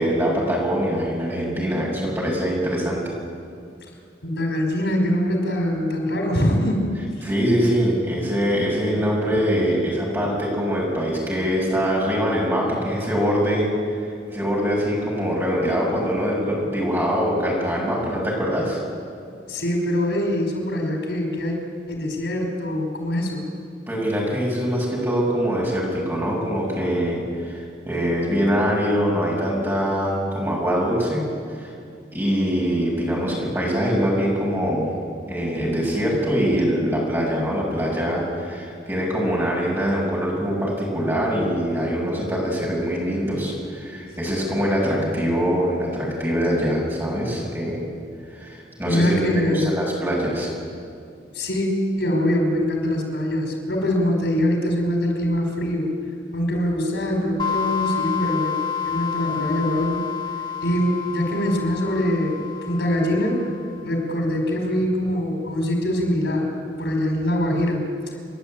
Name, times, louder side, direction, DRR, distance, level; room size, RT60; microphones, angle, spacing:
voice 1, 0.0-3.0 7.2-13.7 14.3-18.8 23.9-31.3 31.5-31.7 32.1-34.9 35.3-47.8 48.3-50.5, equal, 15° right, -4 dB, 6.3 m, -23 dB
voice 2, 4.2-6.9 19.5-21.6 21.9-23.5 45.0-45.2 48.9-49.7 51.3-51.7 52.0-55.9 56.3-58.5 58.8-60.0 60.6-63.4 63.8-67.8, left 1 dB, 85° left, 2 dB, 4.9 m, -23 dB
sound 1, 57.4-63.9, left 8 dB, 25° left, 0.8 m, -29 dB
30.0 x 11.5 x 9.0 m, 2.4 s
head